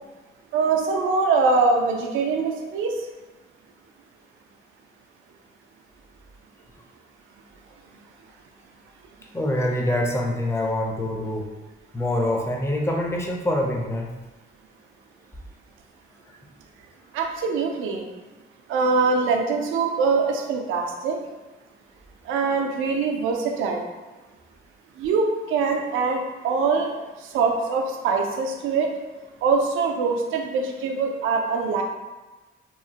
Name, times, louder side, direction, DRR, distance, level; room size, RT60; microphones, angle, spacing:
voice 1, 0.5-2.9 17.1-18.0 18.7-21.2 22.3-23.9 25.0-26.9 27.2-28.9 29.4-31.8, right 4 dB, 85° right, 2 dB, 0.4 m, -23 dB
voice 2, 9.3-11.5 11.9-14.1, left 1 dB, 15° left, -1 dB, 0.5 m, -25 dB
3.0 x 2.0 x 2.7 m, 1.2 s
cardioid pair, 90°, 20 cm